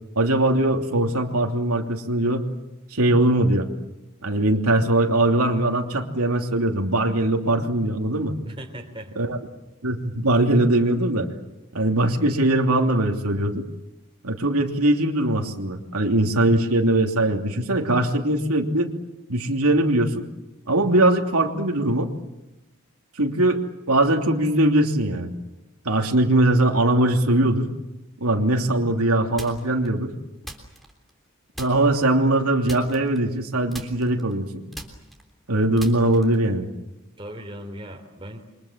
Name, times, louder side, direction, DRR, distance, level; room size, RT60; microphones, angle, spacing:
voice 1, 0.1-2.5 2.9-3.7 4.2-8.4 9.2-9.4 9.8-11.3 11.7-13.7 14.2-18.9 19.3-20.3 20.7-22.1 23.1-25.3 25.8-27.7 28.2-30.1 31.6-34.7 35.5-36.7, right 1 dB, 85° right, 2 dB, 3.0 m, -21 dB
voice 2, 8.4-9.2 37.2-38.4, right 1 dB, 25° right, 4 dB, 3.4 m, -38 dB
sound 1, 29.4-29.9 30.4-31.3 31.5-32.1 32.6-33.4 33.7-36.5, right 1 dB, ahead, 3.5 m, -40 dB
29.0 x 24.5 x 7.5 m, 0.98 s
head